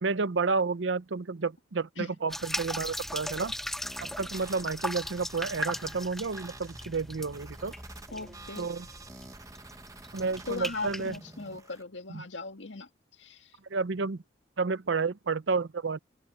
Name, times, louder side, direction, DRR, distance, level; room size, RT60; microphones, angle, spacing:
voice 1, 0.0-3.5 4.2-7.7 8.6-8.9 10.1-11.2 12.1-12.2 13.7-14.2 14.6-16.0, right 4 dB, 75° right, 0.7 m, -31 dB
sound 1, 2.3-11.2, equal, ahead, 0.5 m, -39 dB
sound 2, 3.8-11.8, right 3 dB, 20° right, 1.3 m, -50 dB
voice 2, 8.1-8.7 10.5-12.9 13.2-13.6, left 3 dB, 75° left, 1.9 m, -38 dB
head